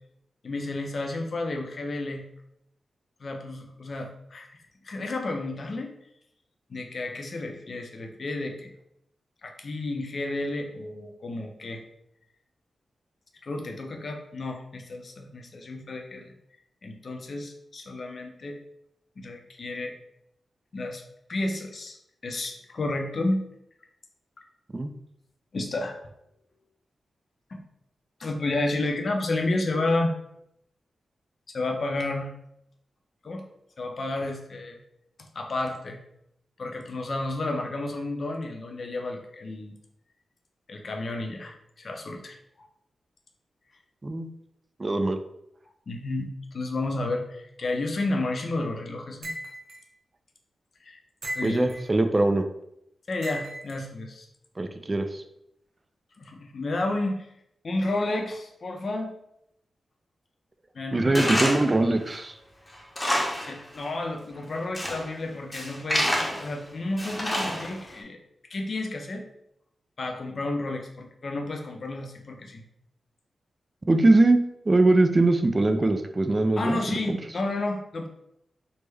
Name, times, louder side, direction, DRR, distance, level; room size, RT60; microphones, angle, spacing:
voice 1, 0.4-2.2 3.2-4.6 4.8-5.9 6.7-8.7 9.4-11.8 13.4-16.3 16.8-18.6 19.2-19.9 20.7-21.0 21.3-22.0 22.2-23.4 25.5-26.0 27.5-27.6 28.2-30.1 31.5-32.3 33.2-33.4 33.8-34.8 35.3-36.0 36.6-39.7 40.7-42.7 45.9-49.3 50.8-51.7 53.1-54.3 56.2-57.3 57.6-59.1 60.7-61.3 63.4-68.2 68.5-69.2 70.0-72.6 76.6-78.1, left 2 dB, 55° left, 4 dB, 0.5 m, -31 dB
voice 2, 44.8-45.2 51.4-52.5 54.6-55.2 60.9-62.4 73.9-76.8, right 2 dB, 30° right, 7 dB, 0.3 m, -22 dB
sound 1, 49.2-49.8 51.2-51.9 53.2-53.8, equal, 70° right, 0.6 m, -36 dB
Tools, 61.1-61.8 62.1-62.2 62.7-63.6 63.8-63.9 64.5-65.1 65.5-66.5 67.0-67.9, equal, 20° left, 0.7 m, -27 dB
3.3 x 2.1 x 3.3 m, 0.78 s
cardioid pair, 70°, 0 cm